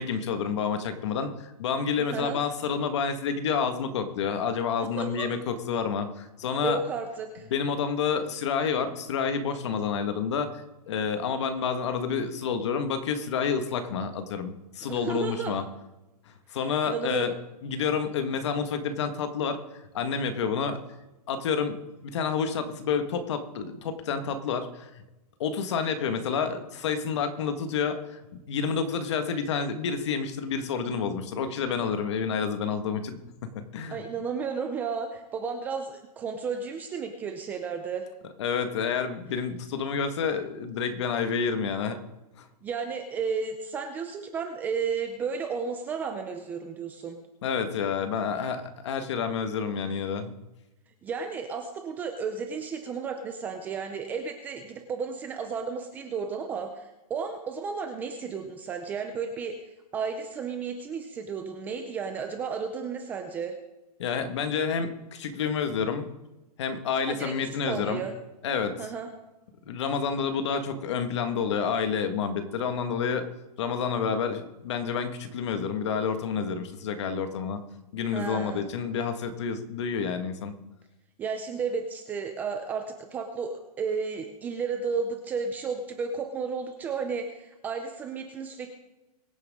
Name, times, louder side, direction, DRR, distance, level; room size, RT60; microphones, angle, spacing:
voice 1, 0.0-6.8 7.5-15.6 16.5-17.3 17.6-19.6 19.9-20.8 21.3-25.0 25.4-34.0 38.4-42.0 42.4-42.5 47.4-50.3 64.0-66.1 66.6-68.0 68.4-68.8 69.7-73.3 73.6-77.6 77.9-80.5, left 6 dB, 45° left, 8 dB, 1.6 m, -29 dB
voice 2, 5.0-5.3 6.6-7.5 14.9-15.5 16.8-17.3 33.9-38.0 42.6-47.2 51.0-59.6 59.9-63.6 67.1-67.4 67.6-68.1 68.8-69.1 78.1-78.6 81.2-88.8, right 5 dB, 10° right, 5 dB, 0.5 m, -33 dB
23.0 x 9.3 x 3.7 m, 1.0 s
hypercardioid pair, 175°, 20 cm